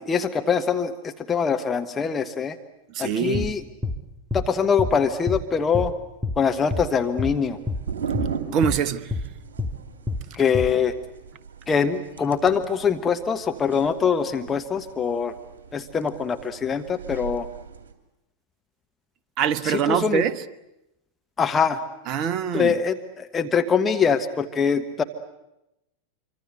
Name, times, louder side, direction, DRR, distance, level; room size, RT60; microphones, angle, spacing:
voice 1, 0.0-2.6 3.0-3.6 4.3-5.9 6.4-7.6 10.3-10.9 11.7-15.3 15.7-17.5 19.6-20.2 21.4-21.8 22.5-25.0, left 6 dB, 20° left, 1.3 m, -23 dB
voice 2, 2.9-3.5 8.5-9.1 19.4-20.3 22.1-22.7, right 8 dB, 40° right, 1.0 m, -24 dB
sound 1, 3.3-3.5 3.8-4.0 4.3-4.5 4.8-4.9 5.3-5.4 5.7-5.9 6.2-6.4 6.7-6.9 7.2-7.3 7.7-7.8 8.1-8.3 8.6-8.8 9.1-9.3 9.6-9.7 10.1-10.2 10.5-10.7, left 2 dB, 5° right, 2.2 m, -27 dB
sound 2, 6.5-17.9, right 7 dB, 60° right, 2.9 m, -38 dB
25.5 x 25.0 x 8.0 m
figure-of-eight pair, 90°, 0 cm